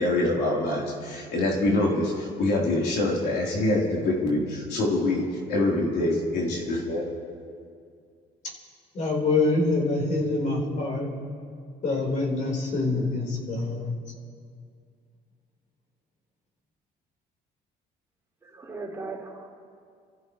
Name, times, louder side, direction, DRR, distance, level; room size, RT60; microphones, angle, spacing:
voice 1, 0.0-7.1, left 2 dB, 75° left, -3 dB, 4.0 m, -25 dB
voice 2, 8.9-11.1 11.8-13.9, left 3 dB, 50° left, -1 dB, 4.5 m, -25 dB
voice 3, 18.4-19.5, right 3 dB, 15° right, -5 dB, 3.8 m, -38 dB
29.0 x 14.5 x 3.3 m, 2.2 s
cardioid pair, 110°, 17 cm